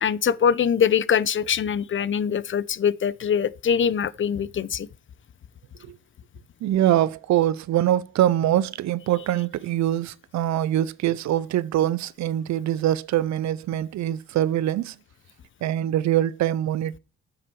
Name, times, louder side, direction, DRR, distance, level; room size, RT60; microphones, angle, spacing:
voice 1, 0.0-4.9, left 7 dB, 40° left, 0.6 m, -23 dB
voice 2, 6.6-14.9 15.6-17.0, right 12 dB, 65° right, 0.5 m, -23 dB
9.7 x 6.0 x 4.7 m
cardioid pair, 90°, 30 cm